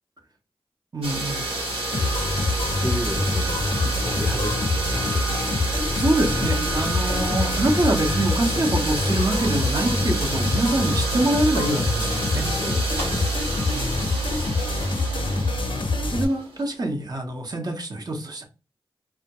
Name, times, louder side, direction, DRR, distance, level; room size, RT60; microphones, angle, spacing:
voice 1, 0.9-1.4 3.4-3.5 5.9-12.5 13.7-14.0 16.1-18.4, right 1 dB, 45° right, 0.7 m, -25 dB
sound 1, 1.0-16.7, right 1 dB, 85° right, 1.1 m, -29 dB
sound 2, 1.9-16.2, left 2 dB, 60° left, 0.5 m, -25 dB
voice 2, 2.8-5.4 12.3-13.3 15.5-16.1, equal, 5° left, 0.5 m, -33 dB
2.2 x 2.0 x 2.8 m
cardioid pair, 55°, 10 cm